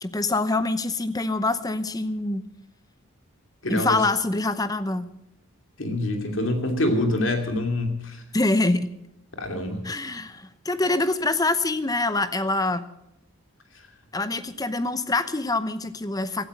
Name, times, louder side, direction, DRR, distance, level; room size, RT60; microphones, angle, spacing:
voice 1, 0.0-2.4 3.7-5.1 8.3-8.9 9.8-12.9 14.1-16.5, left 2 dB, 15° left, 13 dB, 0.8 m, -25 dB
voice 2, 3.6-4.0 5.8-8.2 9.4-9.8, left 1 dB, 60° left, 4 dB, 2.8 m, -25 dB
16.5 x 13.0 x 6.5 m, 0.84 s
head